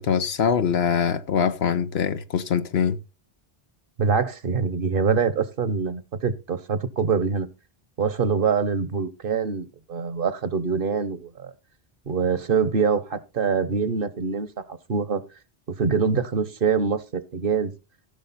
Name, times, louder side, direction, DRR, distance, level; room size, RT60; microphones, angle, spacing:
voice 1, 0.0-3.0, left 7 dB, 80° left, 1.1 m, -23 dB
voice 2, 4.0-7.5 8.0-11.5 12.1-15.2 15.7-17.7, right 5 dB, 60° right, 1.2 m, -24 dB
15.5 x 6.5 x 4.2 m
omnidirectional pair, 1.0 m